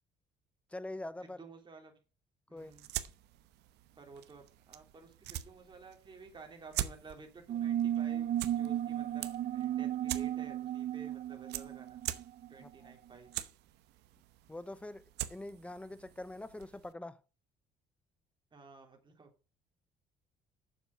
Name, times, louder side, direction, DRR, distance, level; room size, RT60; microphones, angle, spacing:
voice 1, 0.7-1.4 2.5-2.7 12.6-12.9 14.5-15.0 15.3-17.2, left 2 dB, 5° left, 0.6 m, -44 dB
voice 2, 1.2-2.0 2.5-2.9 3.9-12.0 12.5-13.3 18.5-19.3, right 4 dB, 25° right, 3.1 m, -53 dB
sound 1, 2.6-16.9, right 14 dB, 85° right, 0.9 m, -45 dB
sound 2, 7.5-12.7, right 11 dB, 50° right, 0.5 m, -34 dB
7.2 x 7.2 x 5.0 m
cardioid pair, 110°, 17 cm